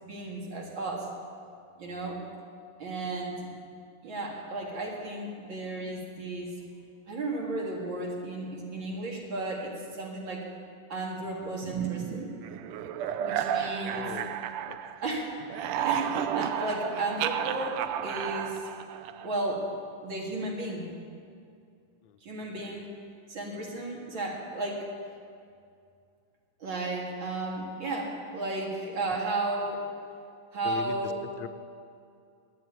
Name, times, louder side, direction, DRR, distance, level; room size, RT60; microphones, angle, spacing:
voice 1, 0.0-1.1 1.8-2.2 2.8-3.5 4.0-6.5 7.1-10.5 10.9-12.3 13.2-14.0 15.0-15.3 15.8-18.6 19.2-19.7 20.0-20.9 22.2-22.9 23.3-24.9 26.6-29.8 30.5-31.3, right 2 dB, 65° right, -1 dB, 2.7 m, -34 dB
sound 1, 11.6-15.1 15.4-19.4, right 10 dB, 85° right, 1.5 m, -32 dB
voice 2, 13.8-14.8 22.0-22.2 30.6-31.0 31.4-31.5, left 10 dB, 70° left, 10 dB, 1.1 m, -40 dB
10.5 x 9.4 x 9.3 m, 2.4 s
omnidirectional pair, 2.4 m